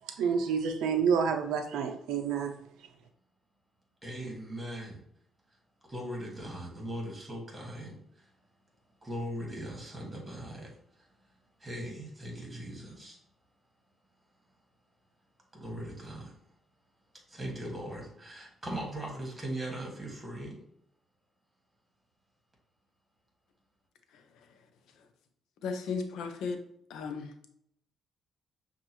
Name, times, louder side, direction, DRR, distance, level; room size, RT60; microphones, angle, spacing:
voice 1, 0.2-2.5, right 6 dB, 90° right, 6 dB, 0.5 m, -28 dB
voice 2, 4.0-5.0 5.9-8.3 9.0-11.1 11.6-13.2 15.5-16.3 17.3-20.6, right 1 dB, 15° right, -1 dB, 1.7 m, -39 dB
voice 3, 25.6-26.6 26.9-27.3, left 5 dB, 85° left, 7 dB, 0.5 m, -35 dB
6.1 x 2.4 x 3.0 m, 0.71 s
cardioid pair, 90°, 0 cm